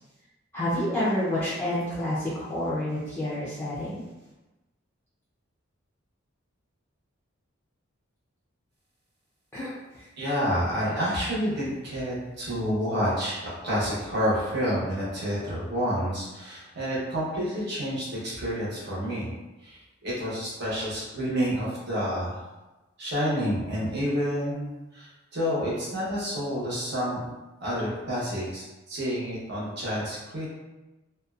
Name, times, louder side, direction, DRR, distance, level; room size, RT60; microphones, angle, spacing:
voice 1, 0.5-4.0 9.5-9.7 10.0-10.1, left 1 dB, 10° left, -10 dB, 0.4 m, -28 dB
voice 2, 10.2-19.3 19.6-22.4 23.0-27.3 27.6-30.5, equal, 55° right, -7 dB, 1.0 m, -29 dB
2.5 x 2.2 x 2.4 m, 1.1 s
head